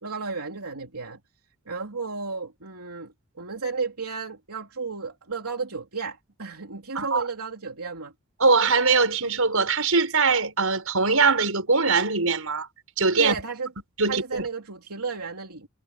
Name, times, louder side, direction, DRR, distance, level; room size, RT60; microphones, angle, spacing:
voice 1, 0.0-1.2 1.7-8.1 13.2-13.7 14.1-15.7, right 4 dB, 90° right, 3.2 m, -33 dB
voice 2, 8.4-12.7 13.0-13.3 14.0-14.5, right 4 dB, 70° right, 5.7 m, -22 dB
head